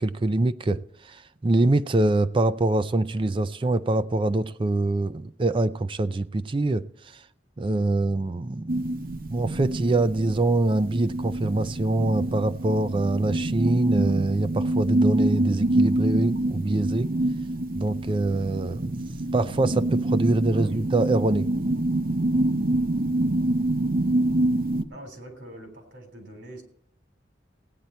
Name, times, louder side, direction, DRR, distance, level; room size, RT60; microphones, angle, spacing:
voice 1, 0.0-6.8 7.1-7.2 7.6-8.7 9.3-17.1 17.7-19.0 19.3-21.5, right 2 dB, 30° right, 0.4 m, -24 dB
sound 1, 8.7-24.8, right 1 dB, 50° right, 0.8 m, -26 dB
voice 2, 20.5-20.9 24.9-26.6, equal, 70° right, 3.4 m, -43 dB
16.5 x 9.3 x 4.3 m
head